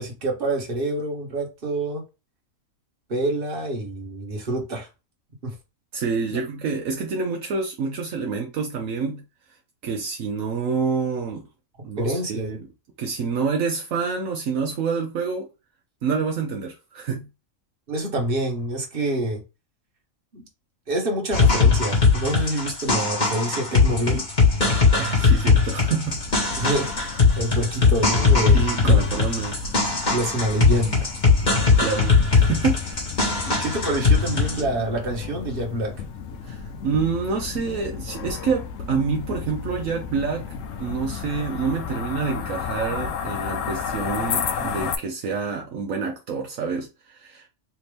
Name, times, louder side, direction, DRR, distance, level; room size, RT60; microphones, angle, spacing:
voice 1, 0.0-2.0 3.1-4.9 5.4-5.5 6.3-6.4 12.0-12.6 17.9-19.4 20.3-20.4 20.9-24.2 26.6-29.0 30.1-31.1 33.5-35.9, right 1 dB, 45° right, 1.4 m, -27 dB
voice 2, 5.9-9.2 9.8-11.4 11.8-12.7 13.0-15.5 16.0-17.3 25.0-26.2 28.5-29.6 31.8-33.1 36.4-40.5 40.8-47.5, right 5 dB, 75° right, 1.1 m, -27 dB
sound 1, 21.3-34.6, left 4 dB, 35° left, 1.6 m, -20 dB
sound 2, 26.0-45.0, left 6 dB, 70° left, 1.0 m, -33 dB
3.4 x 2.8 x 3.2 m
omnidirectional pair, 1.4 m